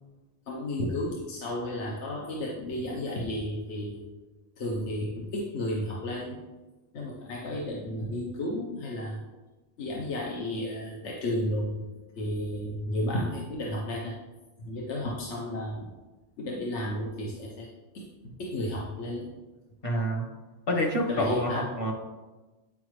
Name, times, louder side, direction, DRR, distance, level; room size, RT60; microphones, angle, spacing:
voice 1, 0.5-4.1 4.6-6.4 6.9-9.2 9.8-11.7 12.2-14.1 14.6-15.9 16.4-17.7 17.9-19.3 21.1-21.7, left 1 dB, 75° left, -2 dB, 1.2 m, -33 dB
voice 2, 19.8-20.2 20.7-21.9, equal, 55° left, 1 dB, 1.4 m, -27 dB
9.4 x 4.9 x 3.1 m, 1.2 s
omnidirectional pair, 1.2 m